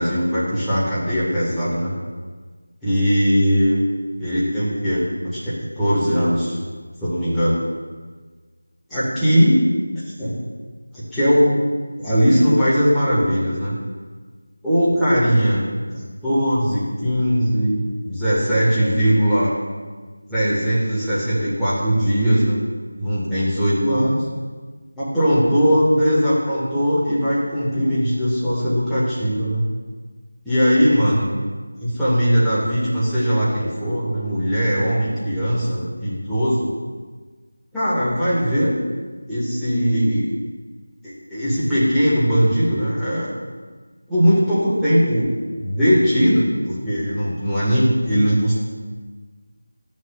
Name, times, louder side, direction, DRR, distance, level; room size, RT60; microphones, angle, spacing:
voice 1, 0.0-1.9 2.8-3.8 4.2-6.6 7.0-7.6 8.9-9.6 9.9-10.3 10.9-11.6 12.0-13.7 14.6-19.5 20.3-22.6 23.0-24.2 25.0-29.7 30.4-31.3 31.8-36.7 37.7-38.7 39.3-40.3 41.0-43.3 44.1-45.3 45.6-48.5, equal, ahead, -16 dB, 1.2 m, -19 dB
11.0 x 6.4 x 2.3 m, 1.5 s
figure-of-eight pair, 165°, 0 cm